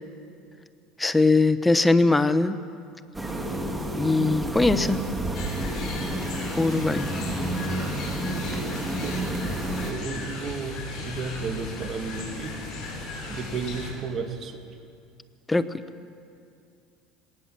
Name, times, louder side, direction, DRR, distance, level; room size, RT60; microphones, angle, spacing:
voice 1, 1.0-2.6 4.0-5.0 6.6-7.1 15.5-15.7, left 3 dB, 10° left, 11 dB, 0.8 m, -21 dB
sound 1, 3.1-9.9, right 1 dB, 10° right, 1.9 m, -30 dB
sound 2, 5.3-13.9, left 3 dB, 40° left, 7.1 m, -36 dB
voice 2, 9.0-12.6 13.3-14.6, right 5 dB, 40° right, 5 dB, 2.0 m, -33 dB
20.0 x 18.5 x 7.5 m, 2.4 s
supercardioid pair, 125°, 0 cm